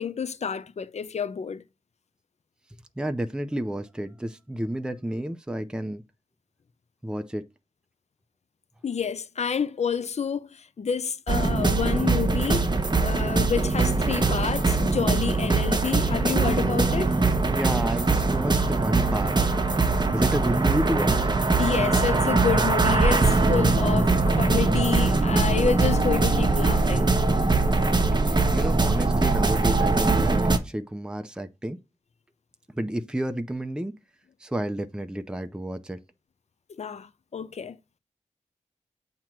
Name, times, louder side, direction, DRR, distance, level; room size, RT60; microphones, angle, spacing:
voice 1, 0.0-1.6 8.8-12.7 13.0-17.2 21.6-27.1 36.7-37.8, left 6 dB, 60° left, 0.5 m, -29 dB
voice 2, 3.0-6.0 7.0-7.4 17.4-19.4 20.1-21.3 28.2-31.8 32.7-33.9 34.4-36.0, right 1 dB, 5° right, 0.5 m, -30 dB
sound 1, 11.3-30.6, right 3 dB, 35° right, 0.9 m, -22 dB
7.5 x 3.0 x 5.8 m
wide cardioid pair, 75°, 13 cm